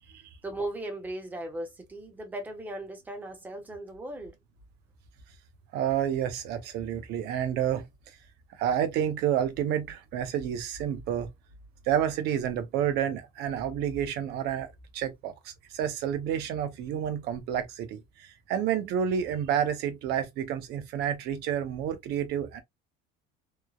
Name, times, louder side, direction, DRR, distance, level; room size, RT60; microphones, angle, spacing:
voice 1, 0.4-4.3, right 1 dB, 10° right, 0.6 m, -37 dB
voice 2, 5.7-7.8 8.6-11.3 11.9-22.6, right 9 dB, 55° right, 0.7 m, -29 dB
3.1 x 2.0 x 2.3 m
cardioid pair, 170°, 21 cm